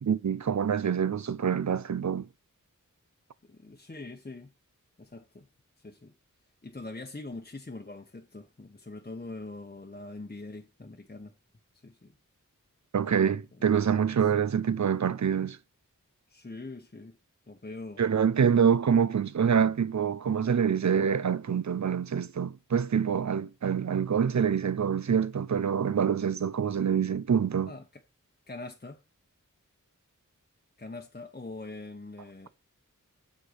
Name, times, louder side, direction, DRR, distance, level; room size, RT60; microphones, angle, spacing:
voice 1, 0.0-2.3 12.9-15.6 18.0-27.7, right 7 dB, 60° right, 0.5 m, -26 dB
voice 2, 3.4-4.5 5.0-5.5 5.8-6.1 6.6-11.3 11.8-12.2 13.6-13.7 14.2-14.3 16.3-17.2 17.5-18.0 27.7-28.0 28.5-29.0 30.8-32.5, left 2 dB, 30° left, 0.9 m, -43 dB
7.9 x 4.4 x 6.4 m
wide cardioid pair, 55°, 32 cm